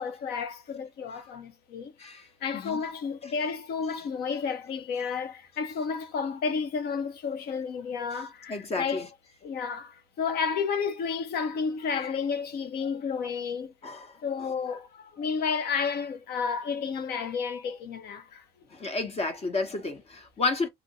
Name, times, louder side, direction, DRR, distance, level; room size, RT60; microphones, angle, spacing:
voice 1, 0.0-1.9 2.4-9.1 9.4-13.7 14.2-18.4, left 5 dB, 70° left, 0.9 m, -31 dB
voice 2, 8.5-9.1 13.8-14.2 18.7-20.7, left 3 dB, 40° left, 1.2 m, -31 dB
3.4 x 2.1 x 4.1 m
cardioid pair, 110°, 17 cm